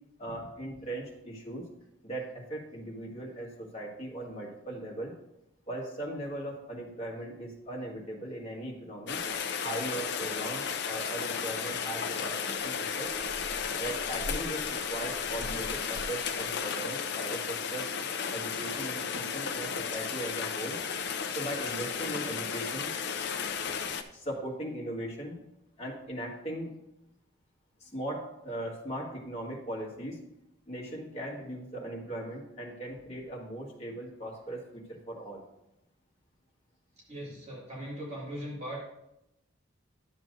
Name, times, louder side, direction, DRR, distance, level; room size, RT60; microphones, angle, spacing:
voice 1, 0.2-1.7 2.0-5.1 5.7-9.2 9.6-13.1 13.7-17.9 18.3-20.8 21.3-22.9 24.1-25.4 25.8-26.7 27.8-30.2 30.7-35.4, right 1 dB, 30° left, -3 dB, 1.7 m, -39 dB
Rain, 9.1-24.0, left 6 dB, 55° left, 0.5 m, -34 dB
voice 2, 37.1-38.8, equal, 35° right, -5 dB, 2.2 m, -39 dB
11.0 x 7.3 x 2.6 m, 0.86 s
head